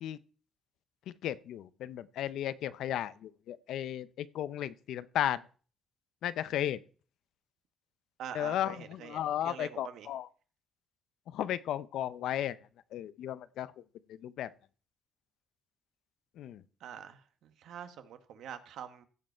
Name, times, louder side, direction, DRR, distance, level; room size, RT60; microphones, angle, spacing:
voice 1, 1.2-5.4 6.2-6.8 8.3-10.3 11.3-12.6 12.9-13.7 14.2-14.5 16.4-16.6, left 11 dB, 80° left, 0.5 m, -34 dB
voice 2, 8.2-10.1 16.8-19.0, right 9 dB, 80° right, 1.1 m, -45 dB
15.5 x 5.3 x 4.4 m
cardioid pair, 90°, 0 cm